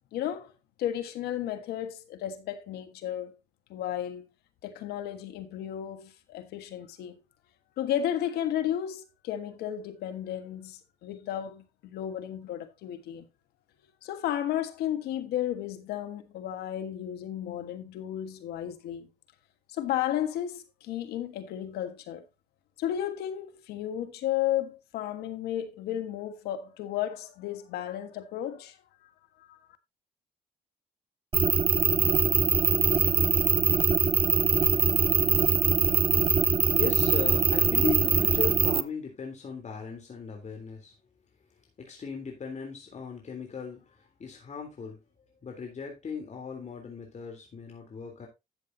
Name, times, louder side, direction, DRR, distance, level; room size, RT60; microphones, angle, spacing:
voice 1, 0.1-0.5 0.8-3.3 3.7-4.2 4.6-7.2 7.8-13.3 14.0-19.1 19.7-22.3 22.8-28.8 29.4-29.6, left 11 dB, 85° left, 1.5 m, -33 dB
sound 1, 31.3-38.8, right 6 dB, 35° right, 0.7 m, -23 dB
voice 2, 36.2-40.9 41.8-45.0 45.4-48.3, left 5 dB, 45° left, 3.5 m, -37 dB
12.5 x 7.6 x 2.8 m
supercardioid pair, 65°, 16 cm